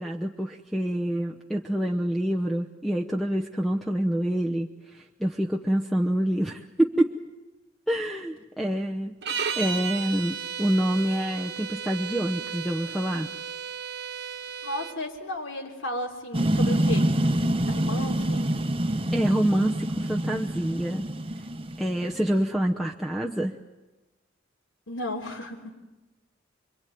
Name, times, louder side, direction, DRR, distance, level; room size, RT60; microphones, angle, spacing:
voice 1, 0.0-7.2 7.9-9.1 9.6-13.3 19.1-21.1 21.8-23.6, right 1 dB, ahead, 2 dB, 0.9 m, -27 dB
sound 1, 9.2-15.0, right 7 dB, 60° right, 1.5 m, -34 dB
voice 2, 14.6-17.1 17.7-18.6 24.9-25.7, left 1 dB, 80° left, -1 dB, 3.5 m, -34 dB
sound 2, 16.3-22.4, right 1 dB, 30° right, 1.1 m, -26 dB
26.0 x 23.5 x 9.3 m, 1.1 s
head